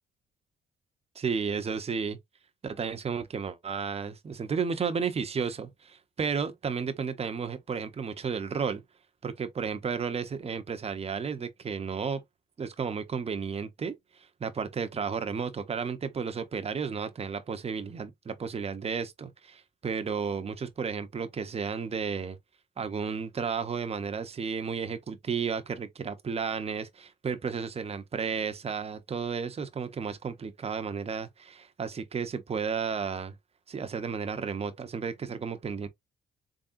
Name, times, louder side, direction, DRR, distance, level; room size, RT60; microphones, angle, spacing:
voice 1, 1.2-2.2 2.6-8.8 9.2-12.2 12.6-22.4 22.8-33.3 33.7-35.9, right 6 dB, 30° right, 0.7 m, -33 dB
3.7 x 3.4 x 2.5 m
cardioid pair, 90°, 20 cm